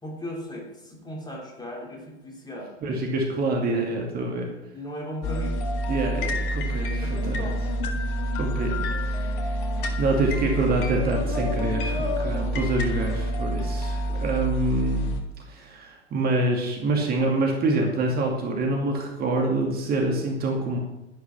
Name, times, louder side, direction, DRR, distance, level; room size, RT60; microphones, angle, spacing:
voice 1, 0.0-2.7 4.7-5.6 7.0-7.6 14.1-14.2, equal, 10° left, -1 dB, 3.2 m, -37 dB
voice 2, 2.8-4.4 5.9-7.5 8.4-9.6 10.0-15.1 15.5-20.8, right 2 dB, 25° right, 1 dB, 2.5 m, -26 dB
sound 1, 5.2-15.2, equal, 50° left, 2.1 m, -27 dB
11.0 x 11.0 x 6.0 m, 0.94 s
figure-of-eight pair, 95°, 34 cm